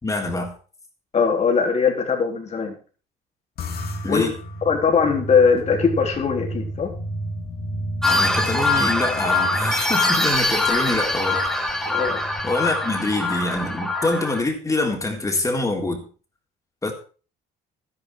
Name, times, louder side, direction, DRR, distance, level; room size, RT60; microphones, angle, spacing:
voice 1, 0.0-0.5 4.0-4.3 8.0-11.8 12.4-16.0 16.8-16.9, left 2 dB, 20° left, 3.6 m, -25 dB
voice 2, 1.1-2.7 4.1-4.3 4.7-6.9 11.8-12.2, left 5 dB, 40° left, 3.9 m, -20 dB
sound 1, 3.6-14.2, equal, 65° left, 2.9 m, -34 dB
sound 2, 8.0-14.4, left 2 dB, 5° left, 2.7 m, -23 dB
13.0 x 11.0 x 4.8 m
cardioid pair, 110°, 17 cm